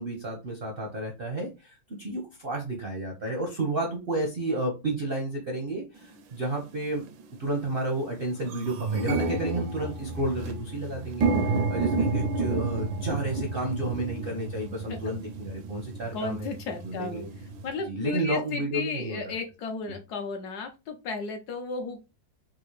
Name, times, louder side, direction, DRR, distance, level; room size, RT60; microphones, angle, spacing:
voice 1, 0.0-7.1 7.4-11.3 11.7-16.5 16.8-17.3 17.9-19.3, right 2 dB, 60° right, 1 dB, 0.5 m, -31 dB
sound 1, 6.1-6.2 7.0-7.2 7.6-7.7 8.0-17.7, right 3 dB, 85° right, 1.4 m, -30 dB
voice 2, 16.1-17.3 17.6-22.0, left 4 dB, 70° left, 4 dB, 1.0 m, -34 dB
3.8 x 2.5 x 3.1 m, 0.26 s
omnidirectional pair, 2.0 m